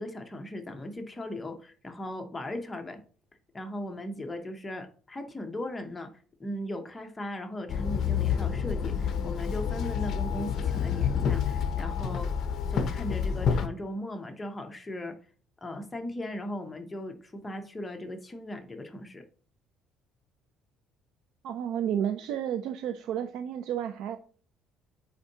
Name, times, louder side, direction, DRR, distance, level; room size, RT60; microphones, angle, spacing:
voice 1, 0.0-3.0 3.5-6.1 6.4-12.3 12.7-15.2 15.6-19.2, left 1 dB, 10° left, 0.8 m, -38 dB
Walk footsteps / Chatter / Hiss, 7.7-13.7, left 7 dB, 45° left, 0.6 m, -28 dB
voice 2, 21.4-24.2, right 9 dB, 65° right, 0.4 m, -31 dB
8.2 x 4.5 x 2.8 m
cardioid pair, 160°, 0 cm